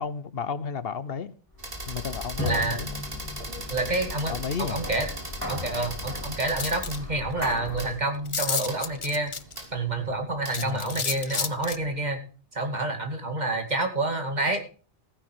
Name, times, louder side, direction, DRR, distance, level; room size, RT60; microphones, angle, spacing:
voice 1, 0.0-1.3 1.9-2.9 4.3-4.8 10.6-11.0, left 6 dB, 65° left, 1.1 m, -33 dB
sound 1, 1.5-8.0, left 2 dB, 20° left, 4.8 m, -36 dB
sound 2, 1.6-12.0, right 2 dB, 60° right, 3.2 m, -40 dB
voice 2, 2.4-2.8 3.7-4.3 4.6-5.1 5.5-9.3 9.7-12.2 12.5-14.6, right 2 dB, 45° right, 2.6 m, -28 dB
sound 3, 6.6-7.0 7.5-7.6 7.8-7.9 8.3-9.7 10.5-11.8, left 5 dB, 35° left, 0.7 m, -30 dB
15.0 x 10.0 x 4.7 m
omnidirectional pair, 1.1 m